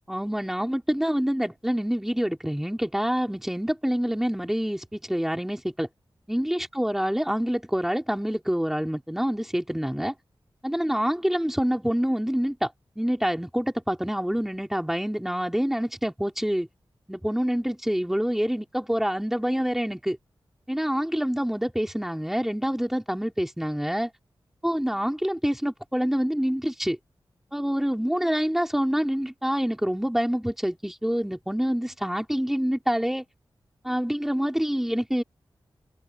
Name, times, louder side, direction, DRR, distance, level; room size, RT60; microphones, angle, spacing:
voice 1, 0.1-5.9 6.3-10.1 10.6-16.7 17.1-20.2 20.7-24.1 24.6-27.0 27.5-33.2 33.8-35.2, equal, 5° right, 3.4 m, -26 dB
wide cardioid pair, 115°, 9 cm